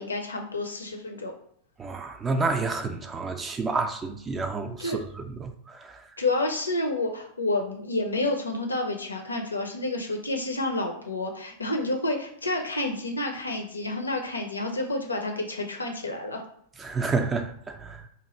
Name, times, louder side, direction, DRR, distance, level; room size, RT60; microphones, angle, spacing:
voice 1, 0.0-1.3 4.8-5.0 6.2-16.4, left 2 dB, 80° left, 0.6 m, -29 dB
voice 2, 1.8-6.0 16.8-18.0, right 3 dB, 20° right, 0.4 m, -30 dB
2.9 x 2.4 x 4.2 m
figure-of-eight pair, 90°, 0 cm